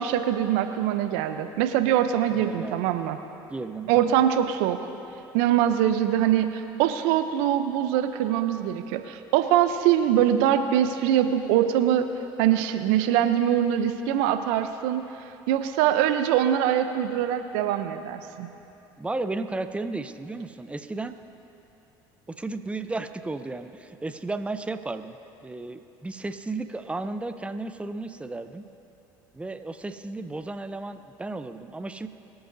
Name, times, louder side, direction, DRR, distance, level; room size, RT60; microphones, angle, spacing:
voice 1, 0.0-3.2 3.9-4.8 5.3-12.1 12.4-15.0 15.5-18.5, right 10 dB, 75° right, 9 dB, 0.7 m, -23 dB
voice 2, 2.4-2.8 3.5-4.2 19.0-21.1 22.3-25.2 25.4-28.6 29.3-32.1, right 2 dB, 10° right, 10 dB, 0.6 m, -34 dB
23.5 x 8.8 x 2.7 m, 2.8 s
hypercardioid pair, 70°, 12 cm